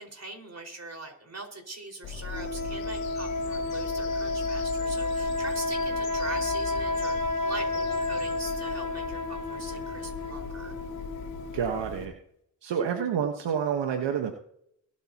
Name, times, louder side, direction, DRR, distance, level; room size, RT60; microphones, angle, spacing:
voice 1, 0.0-7.2 7.4-10.8, right 2 dB, 35° right, 3 dB, 5.2 m, -41 dB
Bird vocalization bird call bird song, 2.0-12.1, left 6 dB, 75° left, 2.8 m, -40 dB
sound 1, 2.3-12.0, left 2 dB, 40° left, 4.2 m, -31 dB
voice 2, 11.5-12.1 12.6-14.3, right 7 dB, 70° right, 5 dB, 1.4 m, -28 dB
22.5 x 8.9 x 3.0 m, 0.70 s
supercardioid pair, 45°, 45 cm